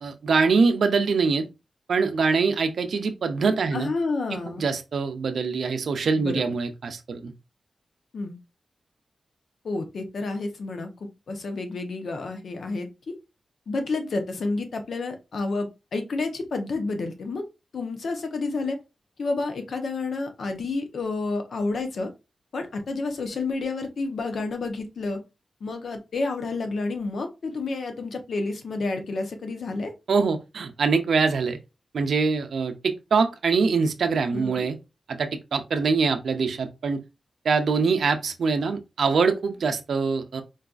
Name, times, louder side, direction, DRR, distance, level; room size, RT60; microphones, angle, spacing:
voice 1, 0.0-1.5 1.9-3.9 4.3-7.3 30.1-31.6 31.9-34.8 35.1-37.0 37.4-40.4, right 4 dB, 80° right, 0.4 m, -24 dB
voice 2, 3.7-4.6 6.2-6.4 8.1-8.4 9.6-10.9 11.3-13.2 13.7-17.4 17.7-18.8 19.2-22.1 22.5-25.2 25.6-29.9 34.3-34.7, left 3 dB, 75° left, 0.7 m, -30 dB
4.0 x 2.3 x 2.4 m
wide cardioid pair, 85°, 0 cm